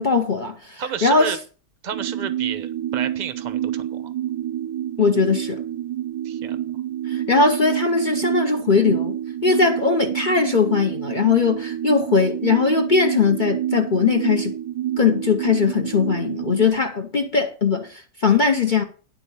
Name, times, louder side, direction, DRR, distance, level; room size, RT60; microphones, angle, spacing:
voice 1, 0.0-1.4 5.0-5.6 7.1-9.2 9.4-14.6 15.0-18.8, left 5 dB, 40° left, 0.7 m, -20 dB
voice 2, 0.8-1.4 1.8-4.0 6.2-6.6, right 7 dB, 40° right, 0.7 m, -31 dB
sound 1, 1.9-16.7, right 11 dB, 75° right, 1.1 m, -28 dB
11.0 x 4.2 x 7.0 m
omnidirectional pair, 1.8 m